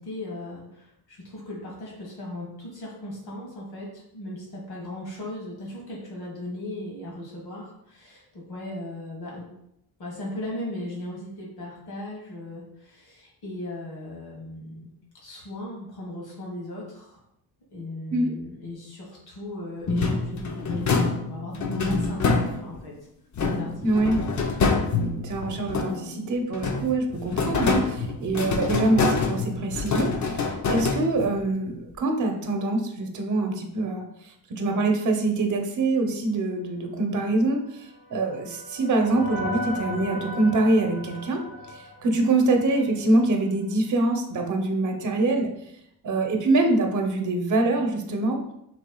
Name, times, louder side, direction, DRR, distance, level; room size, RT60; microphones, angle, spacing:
voice 1, 0.0-9.5 10.0-14.9 15.2-17.2 17.7-22.9 23.4-23.9 24.3-24.5, left 1 dB, 75° left, -3 dB, 1.7 m, -37 dB
sound 1, 19.9-22.9 23.3-26.2 26.5-31.5, left 4 dB, 45° left, 0.7 m, -26 dB
voice 2, 23.8-24.2 25.0-34.0 34.5-37.6 38.1-41.4 41.7-45.5 46.0-48.4, right 2 dB, 50° right, 3 dB, 0.9 m, -24 dB
sound 2, 37.6-42.9, left 1 dB, 30° left, 1.5 m, -37 dB
6.1 x 3.3 x 2.3 m, 0.78 s
cardioid pair, 100°, 39 cm